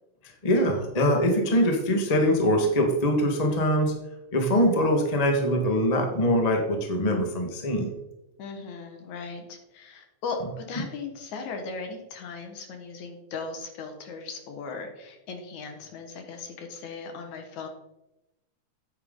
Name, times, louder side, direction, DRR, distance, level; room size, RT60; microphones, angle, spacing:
voice 1, 0.4-4.0 4.3-7.9, equal, 40° left, 3 dB, 0.5 m, -23 dB
voice 2, 8.4-17.7, left 4 dB, 70° left, 5 dB, 2.7 m, -37 dB
9.2 x 8.6 x 3.8 m, 0.94 s
omnidirectional pair, 3.5 m